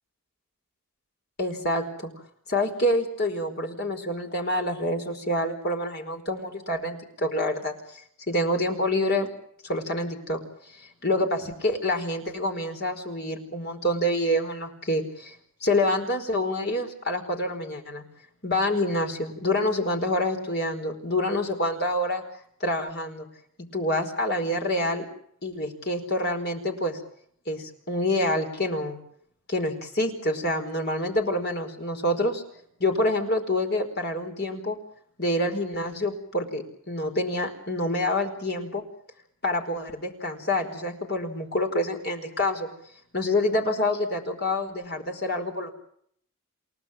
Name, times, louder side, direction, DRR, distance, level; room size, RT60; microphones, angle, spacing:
voice 1, 1.4-2.1 2.5-9.3 9.6-10.4 10.7-15.3 15.6-18.0 18.4-22.2 22.6-23.3 23.6-25.0 25.4-27.0 27.5-29.0 29.5-32.4 32.8-34.8 35.2-38.8 39.4-42.7 43.1-45.7, left 1 dB, 45° left, 4 dB, 4.8 m, -27 dB
29.5 x 17.0 x 7.4 m, 0.66 s
head